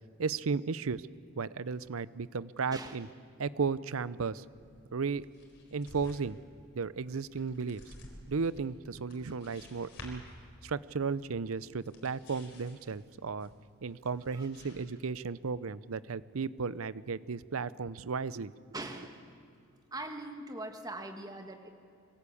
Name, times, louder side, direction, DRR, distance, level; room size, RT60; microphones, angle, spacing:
voice 1, 0.2-1.1 1.4-3.1 3.4-4.4 4.9-5.2 5.7-6.4 6.7-7.9 8.3-10.2 10.6-13.5 13.8-18.5, right 5 dB, 75° right, 17 dB, 0.6 m, -34 dB
sound 1, 4.4-14.8, left 1 dB, 55° left, 4.4 m, -54 dB
voice 2, 18.7-19.2 19.9-21.7, right 2 dB, 20° right, 4 dB, 1.6 m, -41 dB
24.5 x 17.0 x 8.5 m, 2.4 s
head